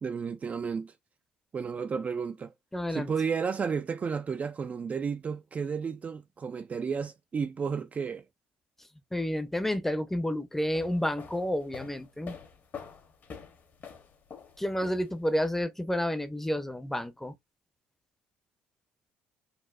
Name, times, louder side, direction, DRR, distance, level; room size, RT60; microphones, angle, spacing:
voice 1, 0.0-0.9 1.5-2.5 2.9-8.2, right 6 dB, 35° right, 0.4 m, -32 dB
voice 2, 2.7-3.1 9.1-12.3 14.6-17.3, equal, 5° left, 0.7 m, -30 dB
sound 1, 10.6-15.4, left 6 dB, 45° left, 1.1 m, -46 dB
4.1 x 2.0 x 2.5 m
supercardioid pair, 85°, 4 cm